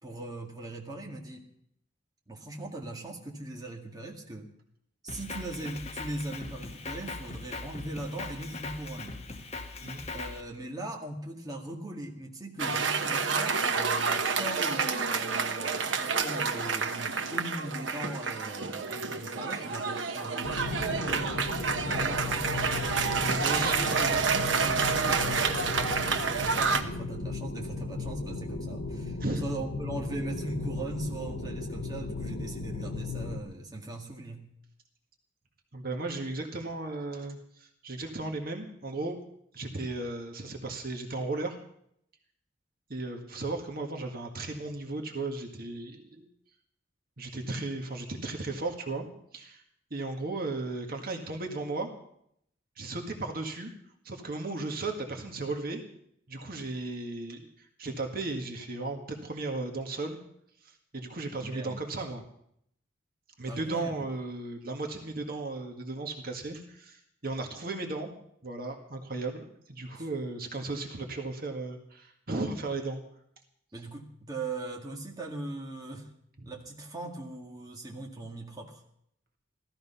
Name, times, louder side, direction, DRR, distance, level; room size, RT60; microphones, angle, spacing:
voice 1, 0.0-1.5 2.3-4.5 5.0-9.2 10.1-21.4 21.8-22.6 23.3-34.5 61.4-61.8 63.5-63.9 69.9-70.1 73.7-76.1 76.4-78.8, right 2 dB, 20° right, 0 dB, 2.0 m, -40 dB
Drum kit, 5.1-10.4, left 3 dB, 35° left, 1.3 m, -40 dB
Cheering / Applause, 12.6-26.8, right 5 dB, 80° right, 1.1 m, -29 dB
sound 1, 20.4-33.4, left 3 dB, 80° left, 1.5 m, -36 dB
voice 2, 23.2-24.2 29.2-29.4 35.7-39.2 39.5-41.6 42.9-46.3 47.2-49.1 49.3-49.6 49.9-51.9 52.8-53.7 54.0-55.8 56.3-60.2 60.6-62.2 63.4-68.1 68.4-73.0 76.4-76.5, right 2 dB, 50° right, 3 dB, 1.8 m, -35 dB
16.0 x 13.5 x 5.7 m, 0.71 s
head